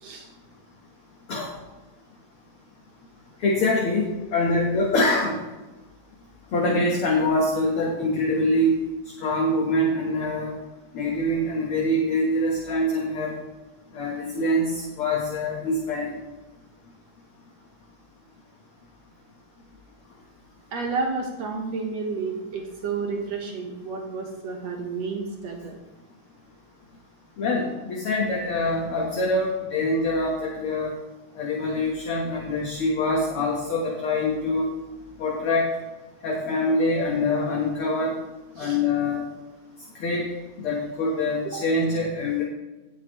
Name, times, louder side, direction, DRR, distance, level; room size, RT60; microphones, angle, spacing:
voice 1, 3.4-5.4 6.5-8.8 9.2-10.5 10.9-13.3 13.9-16.2 27.4-30.9 31.4-34.7 35.2-35.7 36.2-38.1 38.6-39.2 40.0-40.3 40.6-42.4, left 1 dB, 55° left, -2 dB, 1.9 m, -24 dB
voice 2, 20.7-25.8 38.6-38.8 41.5-41.6, right 4 dB, 65° right, 0 dB, 2.3 m, -31 dB
17.0 x 6.3 x 3.1 m, 1.1 s
omnidirectional pair, 3.4 m